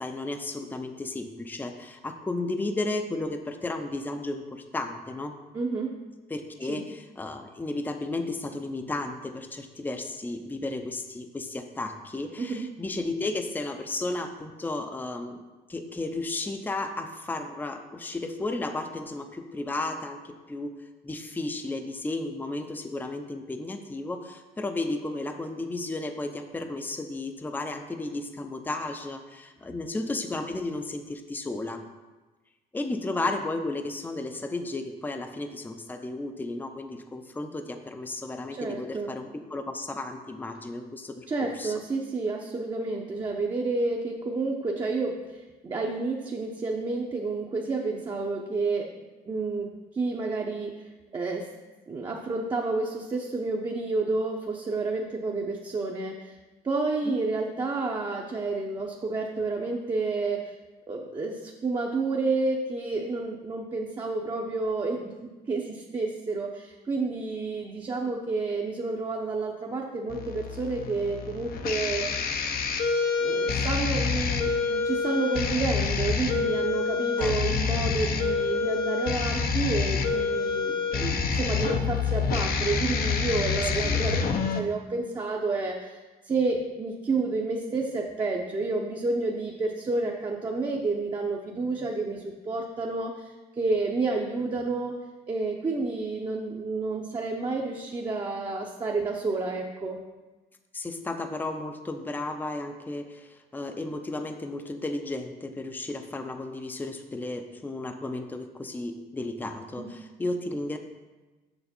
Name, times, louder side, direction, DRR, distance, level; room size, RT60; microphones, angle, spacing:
voice 1, 0.0-5.4 6.3-15.4 15.7-20.7 21.0-31.8 32.7-41.7 57.1-57.2 77.2-77.4 83.8-84.1 100.7-110.8, left 2 dB, 10° left, 6 dB, 0.6 m, -33 dB
voice 2, 5.5-6.0 6.7-6.8 12.4-12.7 38.5-39.1 41.3-49.7 49.9-51.5 51.9-56.3 56.6-60.5 60.9-72.2 73.2-84.2 84.5-94.9 95.3-100.0 109.8-109.9, right 3 dB, 25° right, -1 dB, 0.8 m, -30 dB
sound 1, 70.1-84.6, left 5 dB, 60° left, 0.8 m, -27 dB
6.8 x 6.3 x 4.3 m, 1.2 s
cardioid pair, 110°, 17 cm